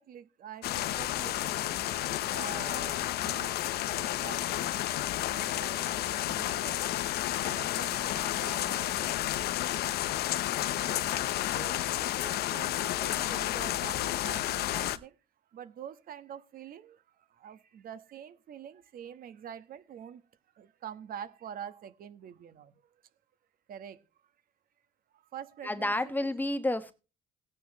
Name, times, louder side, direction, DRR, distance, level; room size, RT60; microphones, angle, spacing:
voice 1, 0.0-1.3 2.3-4.7 5.3-6.8 7.4-9.1 10.4-11.2 11.5-15.1 15.5-17.0 17.4-20.2 20.6-22.7 23.7-24.0 25.3-26.3, right 9 dB, 60° right, 1.3 m, -46 dB
sound 1, 0.6-15.0, left 14 dB, 70° left, 0.9 m, -31 dB
voice 2, 25.6-26.9, left 1 dB, 10° left, 1.1 m, -30 dB
17.0 x 9.3 x 3.1 m
cardioid pair, 110°, 17 cm